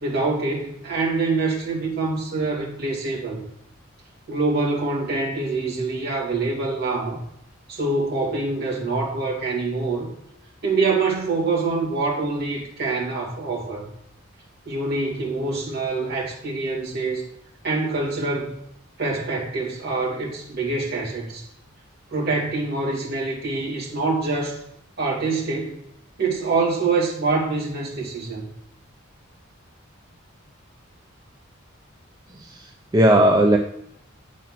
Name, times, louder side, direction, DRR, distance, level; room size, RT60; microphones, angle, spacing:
voice 1, 0.0-3.4 4.3-7.2 7.7-10.1 10.6-13.9 14.7-17.2 17.6-18.6 19.0-21.5 22.1-24.6 25.0-25.8 26.2-28.5, right 3 dB, 50° right, -4 dB, 2.5 m, -25 dB
voice 2, 32.3-33.6, right 1 dB, 20° right, 1 dB, 0.5 m, -18 dB
8.3 x 4.2 x 5.9 m, 0.74 s
head